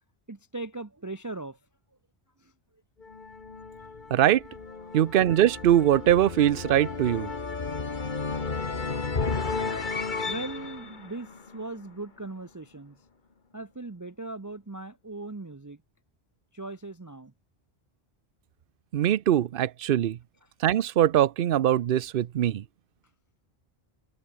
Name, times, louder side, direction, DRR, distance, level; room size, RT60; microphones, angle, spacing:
voice 1, 0.3-1.6 2.4-2.5 4.8-4.9 10.3-13.0 13.5-15.8 16.5-17.3 20.4-20.5, right 2 dB, 20° right, 0.7 m, -39 dB
sound 1, 3.0-12.0, left 4 dB, 50° left, 1.7 m, -33 dB
voice 2, 4.1-4.4 4.9-7.3 18.9-20.2 20.6-22.6, right 11 dB, 65° right, 0.8 m, -22 dB
omnidirectional pair, 1.1 m